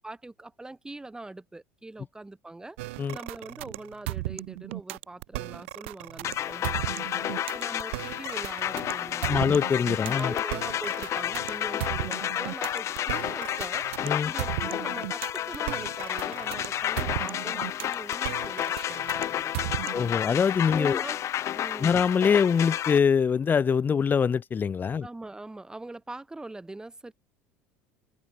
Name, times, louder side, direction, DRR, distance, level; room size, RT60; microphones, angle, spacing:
voice 1, 0.0-2.8 3.1-9.5 10.0-13.9 14.2-19.9 20.7-21.2 21.6-21.9 25.0-27.1, right 2 dB, 10° right, 2.2 m, -42 dB
sound 1, 2.8-20.2, right 21 dB, 75° right, 3.3 m, -36 dB
sound 2, 6.2-23.0, left 11 dB, 45° left, 1.2 m, -31 dB
voice 2, 9.2-10.3 14.0-14.3 19.9-21.0 21.8-25.1, left 6 dB, 30° left, 0.8 m, -24 dB
open air
hypercardioid pair, 75°, 7 cm